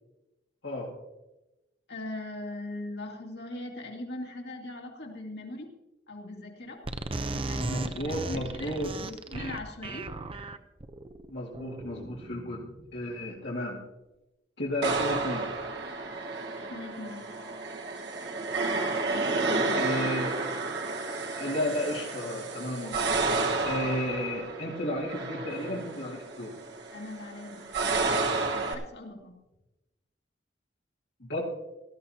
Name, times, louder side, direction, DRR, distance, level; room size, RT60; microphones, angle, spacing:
voice 1, 1.9-5.7 6.1-6.8 7.3-10.1 16.7-17.3 19.0-20.2 26.9-27.7 28.5-29.4, left 1 dB, 65° left, 1 dB, 2.3 m, -40 dB
sound 1, 6.9-13.3, right 2 dB, 30° right, 0.7 m, -36 dB
voice 2, 7.7-8.9 11.3-12.6 12.9-13.8 14.6-15.5 19.8-20.3 21.4-23.1 23.7-26.5 31.2-31.4, left 1 dB, 85° left, -6 dB, 2.3 m, -33 dB
sound 2, 14.8-28.7, right 3 dB, 70° right, 1.5 m, -31 dB
18.0 x 13.0 x 2.9 m, 1.0 s
head